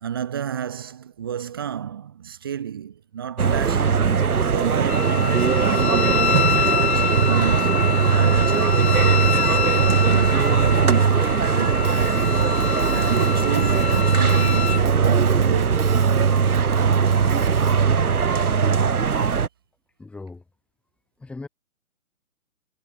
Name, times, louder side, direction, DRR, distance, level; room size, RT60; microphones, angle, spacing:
voice 1, 0.0-4.1 4.5-12.0 12.6-16.0, right 9 dB, 15° right, 0.8 m, -32 dB
sound 1, 3.4-19.5, right 6 dB, 90° right, 2.0 m, -19 dB
Wind instrument woodwind instrument, 4.9-14.8, left 8 dB, 50° left, 2.4 m, -27 dB
Drum kit / Drum, 11.8-17.8, right 9 dB, 40° right, 7.2 m, -38 dB
voice 2, 20.0-20.4 21.2-21.5, left 3 dB, 5° left, 3.4 m, -37 dB
hypercardioid pair, 165°, 43 cm